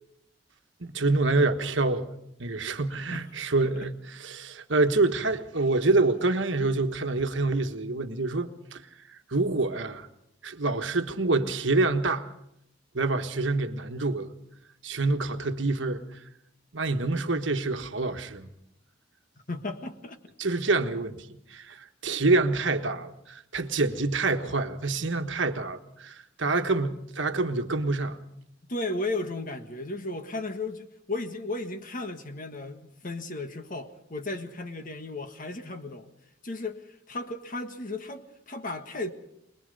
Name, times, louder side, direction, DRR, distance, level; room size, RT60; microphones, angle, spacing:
voice 1, 0.8-2.1 2.4-8.8 9.3-10.1 10.4-12.3 12.9-14.3 14.8-16.2 16.7-18.5 20.4-28.2, right 3 dB, 65° right, 1.4 m, -27 dB
voice 2, 19.5-20.2 28.7-36.1 36.4-39.1, left 2 dB, 45° left, 1.5 m, -35 dB
23.0 x 21.5 x 5.4 m
head